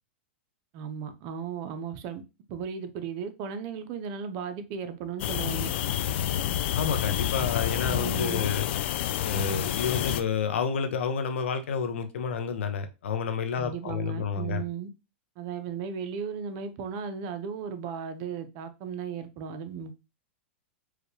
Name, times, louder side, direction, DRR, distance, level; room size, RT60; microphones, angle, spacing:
voice 1, 0.7-2.2 2.5-5.7 7.9-8.4 13.6-14.9 15.4-19.9, right 7 dB, 45° right, 0.6 m, -36 dB
sound 1, 5.2-10.2, left 11 dB, 60° left, 0.4 m, -29 dB
voice 2, 6.7-8.7 9.2-14.6, left 6 dB, 80° left, 0.7 m, -30 dB
4.7 x 2.3 x 3.2 m
hypercardioid pair, 140°, 6 cm